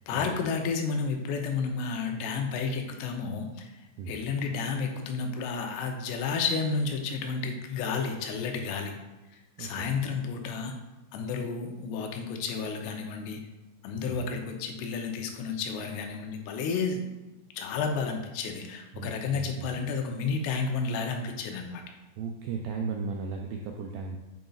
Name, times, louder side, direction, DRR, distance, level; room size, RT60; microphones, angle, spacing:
voice 1, 0.1-8.9 9.6-10.7 11.1-13.4 13.8-17.1 17.5-21.8, left 5 dB, 90° left, 3 dB, 2.9 m, -31 dB
voice 2, 18.9-19.7 22.2-24.2, right 4 dB, 85° right, 2 dB, 2.0 m, -36 dB
8.9 x 5.2 x 2.4 m, 1.1 s
omnidirectional pair, 4.7 m